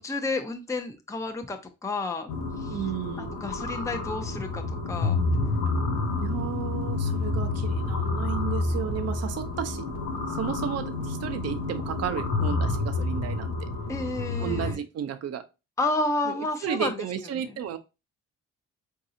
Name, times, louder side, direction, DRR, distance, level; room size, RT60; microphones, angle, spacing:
voice 1, 0.0-2.3 2.6-2.8 3.4-5.2 13.9-14.8 15.8-17.1 17.4-17.5, left 2 dB, 10° left, 5 dB, 0.6 m, -31 dB
sound 1, 2.3-14.7, left 3 dB, 85° left, 0.8 m, -29 dB
voice 2, 2.7-3.4 6.2-9.9 10.3-13.5 14.4-15.4 16.3-17.8, right 9 dB, 45° right, 8 dB, 0.6 m, -33 dB
4.6 x 2.7 x 2.6 m, 0.27 s
hypercardioid pair, 50°, 34 cm